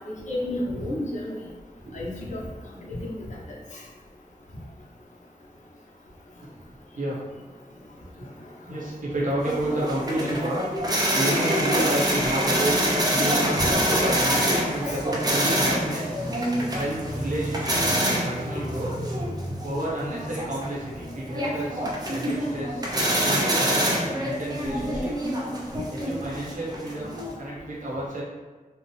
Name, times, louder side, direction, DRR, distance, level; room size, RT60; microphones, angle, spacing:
voice 1, 0.3-1.4 1.9-2.4 3.0-3.2 13.6-13.7 14.9-15.0, left 1 dB, 55° left, -4 dB, 0.7 m, -30 dB
voice 2, 8.7-10.7 11.1-12.8 13.1-16.2 16.7-18.9 19.6-22.8 23.2-23.9 24.2-25.3 25.9-28.2, right 1 dB, 60° right, -5 dB, 0.9 m, -30 dB
sound 1, 9.4-27.3, right 1 dB, 25° right, 0.5 m, -26 dB
2.8 x 2.0 x 3.0 m, 1.3 s
wide cardioid pair, 100°, 15 cm